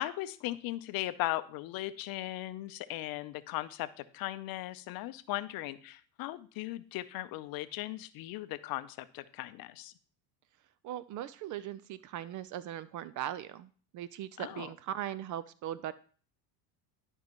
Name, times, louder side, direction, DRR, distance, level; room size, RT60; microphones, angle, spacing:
voice 1, 0.0-9.9 14.4-14.7, left 16 dB, 45° left, 13 dB, 0.6 m, -38 dB
voice 2, 10.8-15.9, right 11 dB, 40° right, 16 dB, 0.5 m, -39 dB
11.5 x 5.5 x 3.0 m, 0.42 s
hypercardioid pair, 90°, 49 cm